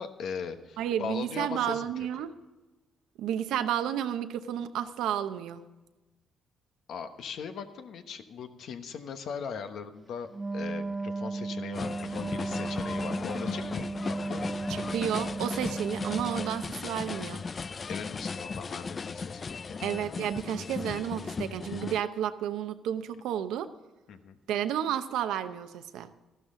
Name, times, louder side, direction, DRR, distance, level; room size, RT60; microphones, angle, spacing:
voice 1, 0.0-1.8 6.9-14.5 17.9-19.8 24.1-24.4, left 6 dB, 75° left, 8 dB, 1.1 m, -39 dB
voice 2, 0.8-2.3 3.2-5.6 14.7-17.4 19.8-23.7 24.5-26.1, right 10 dB, 90° right, 9 dB, 0.8 m, -31 dB
Wind instrument woodwind instrument, 10.3-16.8, right 3 dB, 25° right, 0.4 m, -35 dB
sound 1, 11.7-22.0, left 5 dB, 40° left, 0.3 m, -36 dB
13.5 x 12.0 x 3.8 m, 1.1 s
cardioid pair, 90°, 0 cm